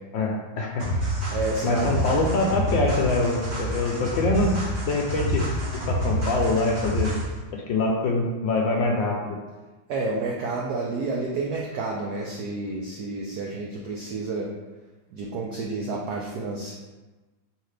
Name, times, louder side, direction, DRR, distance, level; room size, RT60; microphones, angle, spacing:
voice 1, 0.1-0.8 1.6-4.6 4.9-5.4 5.9-7.1 7.5-9.4, left 2 dB, 75° left, 0 dB, 1.2 m, -24 dB
sound 1, 0.8-7.4, equal, 30° right, 1.1 m, -28 dB
voice 2, 1.3-2.0 9.9-14.5 15.1-16.7, right 3 dB, 85° right, -2 dB, 0.8 m, -30 dB
4.8 x 3.2 x 3.2 m, 1.2 s
omnidirectional pair, 2.4 m